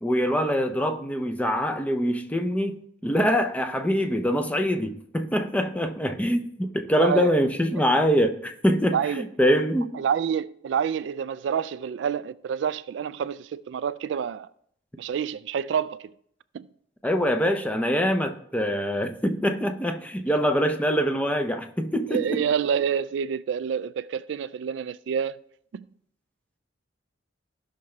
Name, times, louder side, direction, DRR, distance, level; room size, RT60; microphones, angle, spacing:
voice 1, 0.0-9.9 17.0-22.4, equal, 10° left, 0.6 m, -24 dB
voice 2, 7.0-7.3 7.7-7.8 8.9-9.2 9.9-14.5 15.0-16.1 16.5-16.7 22.1-25.4 25.7-25.9, right 7 dB, 65° right, 0.3 m, -28 dB
15.5 x 5.8 x 3.3 m
head